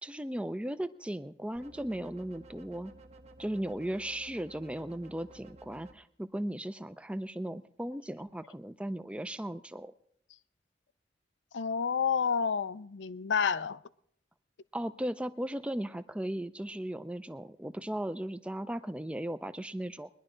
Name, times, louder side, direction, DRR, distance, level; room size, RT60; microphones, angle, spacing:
voice 1, 0.0-2.9 3.4-9.9 14.7-20.1, right 1 dB, 5° right, 0.4 m, -37 dB
sound 1, 1.6-5.9, right 2 dB, 35° right, 0.7 m, -54 dB
voice 2, 11.5-13.8, left 6 dB, 80° left, 0.5 m, -29 dB
21.5 x 11.0 x 3.8 m
head